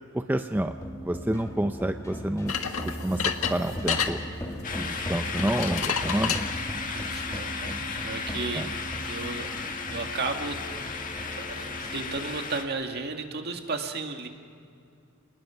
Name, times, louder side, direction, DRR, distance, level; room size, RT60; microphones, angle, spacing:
voice 1, 0.1-0.7 1.0-2.5 2.8-4.2 4.7-6.4 8.5-8.7, right 1 dB, 10° right, 7 dB, 0.5 m, -29 dB
sound 1, 0.5-12.4, equal, 15° left, 1.8 m, -38 dB
sound 2, 2.5-4.1 5.3-6.4, left 7 dB, 85° left, 1.6 m, -29 dB
sound 3, 4.6-12.6, left 5 dB, 40° left, 1.7 m, -35 dB
voice 2, 6.9-10.6 11.3-14.3, right 4 dB, 50° right, 4 dB, 2.0 m, -34 dB
28.5 x 20.0 x 5.9 m, 2.4 s
head